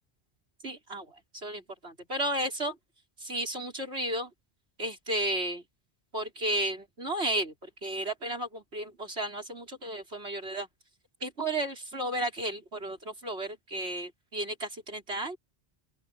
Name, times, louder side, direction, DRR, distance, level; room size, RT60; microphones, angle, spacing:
voice 1, 0.6-1.1 1.3-2.8 3.2-4.3 4.8-5.6 6.1-10.7 11.2-15.4, right 1 dB, 85° right, 5.7 m, -33 dB
open air
omnidirectional pair, 1.1 m